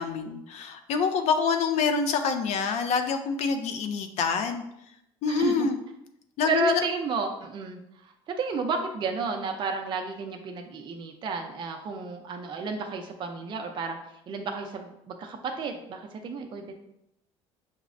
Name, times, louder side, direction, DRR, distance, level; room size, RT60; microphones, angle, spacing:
voice 1, 0.0-4.6 5.2-5.8 6.4-6.7, left 5 dB, 60° left, 6 dB, 0.4 m, -26 dB
voice 2, 5.3-5.7 6.4-16.7, right 4 dB, 40° right, 3 dB, 0.4 m, -32 dB
5.7 x 2.0 x 2.5 m, 0.81 s
cardioid pair, 110°, 13 cm